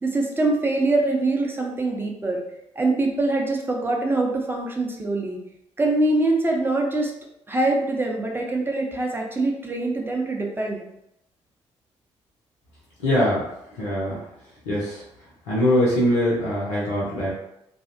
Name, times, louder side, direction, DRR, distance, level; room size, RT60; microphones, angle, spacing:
voice 1, 0.0-2.4 2.8-5.4 5.8-7.1 7.5-10.8, right 2 dB, 15° right, 0 dB, 0.6 m, -23 dB
voice 2, 13.0-13.4 13.8-14.2 14.7-15.0 15.5-17.3, equal, 75° left, -6 dB, 0.5 m, -22 dB
2.5 x 2.0 x 2.5 m, 0.82 s
figure-of-eight pair, 40°, 15 cm